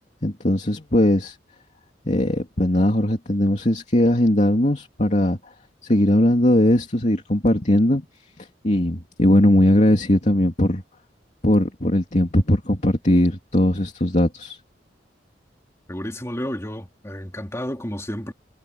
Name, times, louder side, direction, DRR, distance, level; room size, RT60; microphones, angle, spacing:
voice 1, 0.2-1.4 2.1-5.4 5.8-8.0 8.4-10.8 11.4-14.6, left 1 dB, 40° left, 2.7 m, -19 dB
voice 2, 15.9-18.3, equal, 15° left, 3.2 m, -31 dB
head